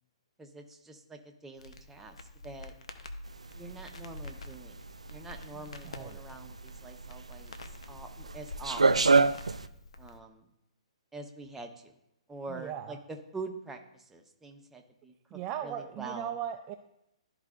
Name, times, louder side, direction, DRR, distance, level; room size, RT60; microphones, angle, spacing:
voice 1, 0.4-2.2 2.4-2.7 3.5-4.8 5.1-7.5 7.9-9.3 10.0-10.5 11.1-11.9 12.3-15.1 15.6-16.3, right 3 dB, 10° right, 4 dB, 0.9 m, -45 dB
Crackle, 1.6-10.2, left 2 dB, 75° left, 0.8 m, -47 dB
sound 1, 3.3-9.7, right 4 dB, 90° right, 0.4 m, -28 dB
voice 2, 5.5-6.2 12.5-13.0 15.3-16.7, right 10 dB, 30° right, 7 dB, 0.4 m, -38 dB
12.5 x 4.8 x 2.5 m, 0.83 s
figure-of-eight pair, 125°, 3 cm